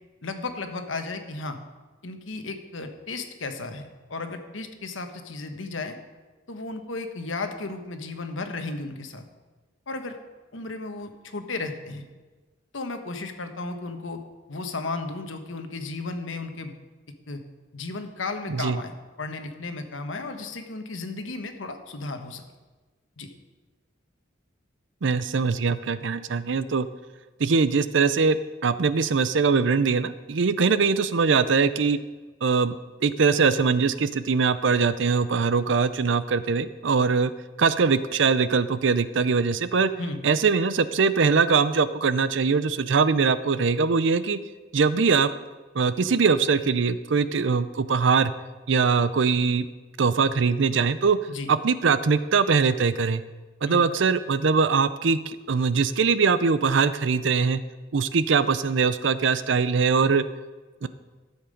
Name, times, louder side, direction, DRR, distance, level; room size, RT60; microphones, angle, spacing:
voice 1, 0.2-1.6 2.0-6.0 6.5-9.3 9.9-10.2 10.5-12.1 12.7-14.2 14.5-16.7 17.3-17.4 17.7-18.9 19.2-22.4 23.2-23.3 40.0-40.2 51.3-51.5 53.7-53.8, left 3 dB, 85° left, 7 dB, 1.2 m, -34 dB
voice 2, 25.0-26.9 27.4-32.0 32.4-32.8 33.0-37.3 37.6-39.9 40.2-44.4 44.7-45.3 45.7-48.3 48.7-49.7 50.0-51.2 51.5-53.2 53.6-57.6 57.9-60.2 60.8-60.9, right 5 dB, 70° right, 14 dB, 0.5 m, -22 dB
13.5 x 7.3 x 5.2 m, 1.3 s
head